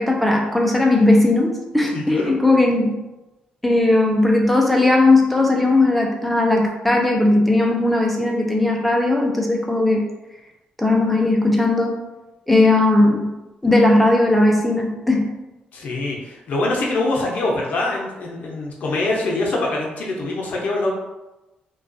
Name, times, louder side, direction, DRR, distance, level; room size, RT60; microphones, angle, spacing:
voice 1, 0.0-3.0 3.6-10.1 10.8-11.9 12.5-13.3 13.6-15.3, left 2 dB, 5° left, 0 dB, 0.4 m, -17 dB
voice 2, 1.9-2.3 15.7-20.9, left 2 dB, 60° left, -2 dB, 0.6 m, -24 dB
2.3 x 2.2 x 2.5 m, 1.0 s
cardioid pair, 120°, 3 cm